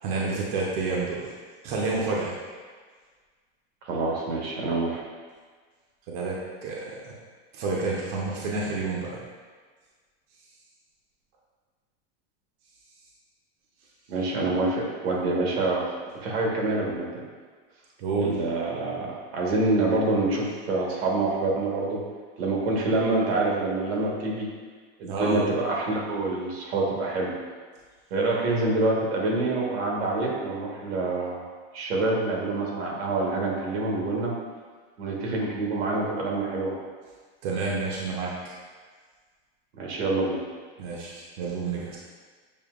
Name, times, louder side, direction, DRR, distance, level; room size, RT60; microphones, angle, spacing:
voice 1, 0.0-1.2 1.6-2.4 6.1-7.1 7.5-9.2 18.0-18.4 25.1-25.4 37.4-38.5 40.8-42.0, right 3 dB, 45° right, -4 dB, 0.7 m, -29 dB
voice 2, 3.8-5.0 14.1-17.1 18.2-22.0 22.4-24.5 25.0-27.3 28.1-31.4 31.7-34.3 35.0-36.7 39.8-40.4, right 2 dB, 85° right, -2 dB, 1.2 m, -26 dB
6.8 x 2.7 x 2.4 m, 1.5 s
supercardioid pair, 165°, 30 cm